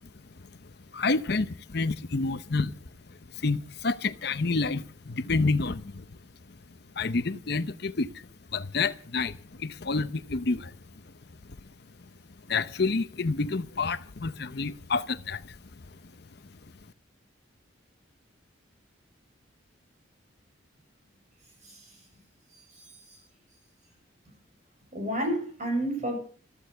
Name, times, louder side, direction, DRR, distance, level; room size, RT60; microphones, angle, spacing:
voice 1, 0.9-2.8 3.3-6.0 7.0-10.7 12.5-15.6, left 3 dB, 55° left, 0.7 m, -29 dB
voice 2, 21.6-22.0 22.5-23.2 24.9-26.2, right 1 dB, 35° right, 7.4 m, -32 dB
14.5 x 14.0 x 7.0 m
head